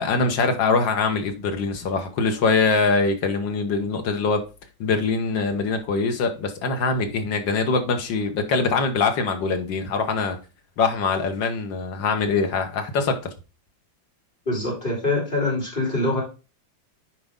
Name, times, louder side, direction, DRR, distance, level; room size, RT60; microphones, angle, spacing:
voice 1, 0.0-4.4 4.8-10.4 10.8-13.2, left 4 dB, 70° left, 1.9 m, -23 dB
voice 2, 14.5-16.2, left 2 dB, 25° left, 3.8 m, -24 dB
9.4 x 4.8 x 3.7 m
omnidirectional pair, 2.1 m